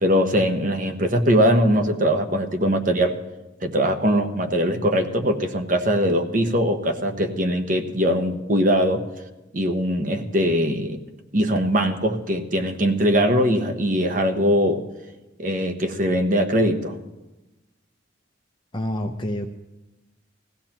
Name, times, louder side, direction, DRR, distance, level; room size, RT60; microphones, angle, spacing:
voice 1, 0.0-3.2 3.6-9.0 9.5-11.0 11.3-14.8 15.4-16.9, equal, 40° right, 6 dB, 1.0 m, -21 dB
voice 2, 18.7-19.5, left 1 dB, 25° left, 3 dB, 0.6 m, -27 dB
21.0 x 15.5 x 3.0 m, 1.1 s
head